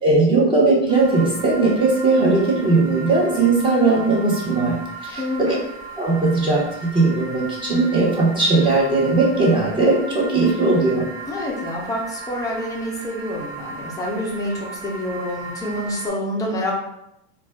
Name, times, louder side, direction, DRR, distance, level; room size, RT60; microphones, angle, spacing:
voice 1, 0.0-4.8 5.0-5.2 6.0-11.1, right 3 dB, 15° right, -4 dB, 0.8 m, -18 dB
sound 1, 0.9-16.1, right 3 dB, 55° right, 1.1 m, -36 dB
voice 2, 5.1-5.5 11.3-16.7, left 1 dB, 10° left, -2 dB, 0.3 m, -27 dB
3.9 x 2.2 x 2.2 m, 0.81 s
supercardioid pair, 150°, 34 cm